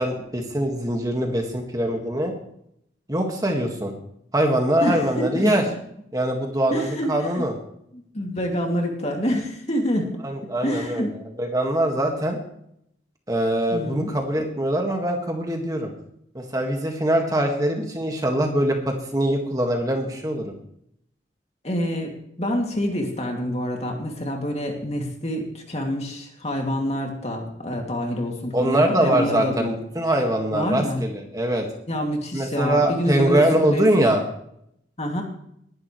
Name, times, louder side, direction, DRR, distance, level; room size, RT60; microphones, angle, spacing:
voice 1, 0.0-2.3 3.1-3.9 4.3-5.6 6.1-7.5 10.2-11.0 11.4-12.4 13.3-15.9 16.3-20.5 28.5-31.7 32.3-34.2, right 1 dB, 20° right, 2 dB, 1.8 m, -23 dB
voice 2, 4.8-5.5 6.7-7.4 7.9-10.1 10.6-11.1 13.7-14.1 21.6-22.1 22.4-29.7 30.5-31.0 31.9-33.4 33.7-34.1 35.0-35.2, equal, 35° left, 2 dB, 2.4 m, -27 dB
20.0 x 11.0 x 3.2 m, 0.72 s
head